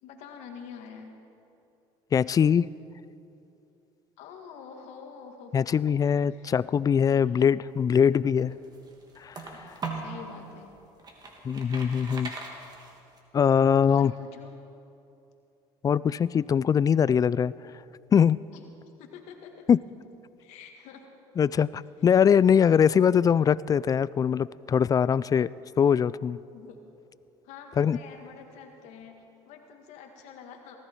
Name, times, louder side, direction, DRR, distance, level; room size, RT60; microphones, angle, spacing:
voice 1, 0.0-1.2 4.2-5.9 6.3-6.5 7.0-7.5 9.5-10.7 13.9-14.5 18.5-18.6 19.0-19.7 20.4-21.1 26.5-26.8 27.4-30.8, left 6 dB, 75° left, 3 dB, 1.9 m, -47 dB
voice 2, 2.1-2.7 5.5-8.6 9.2-9.3 11.4-12.3 13.3-14.1 15.8-17.5 18.1-18.4 19.7-19.8 21.4-25.5 25.8-26.4 27.8-28.0, left 7 dB, 30° left, 20 dB, 0.3 m, -22 dB
sound 1, 8.1-10.2 10.7-13.2, right 4 dB, 35° right, 2.6 m, -39 dB
19.0 x 14.5 x 4.6 m, 2.7 s
supercardioid pair, 85°, 12 cm